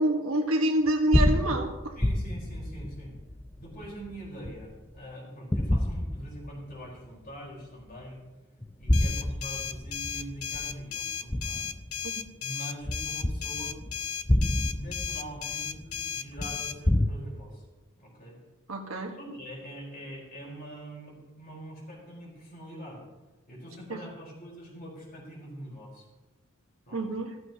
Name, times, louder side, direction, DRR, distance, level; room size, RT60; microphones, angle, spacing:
voice 1, 0.0-2.0 18.7-19.2 23.9-24.0 26.9-27.4, right 1 dB, 75° right, 2 dB, 1.6 m, -27 dB
sound 1, 0.9-5.0 5.5-6.9 7.3-7.4 8.6-12.3 12.8-17.1, left 1 dB, 10° left, 0.4 m, -29 dB
voice 2, 2.0-3.2 3.6-8.2 8.8-11.6 12.4-13.9 14.7-17.6 18.0-18.4 19.2-23.0 23.5-26.1 26.9-27.1, right 1 dB, 45° left, -3 dB, 4.6 m, -43 dB
sound 2, 8.9-16.8, left 8 dB, 85° left, 0.6 m, -35 dB
14.5 x 14.0 x 3.0 m, 1.1 s
head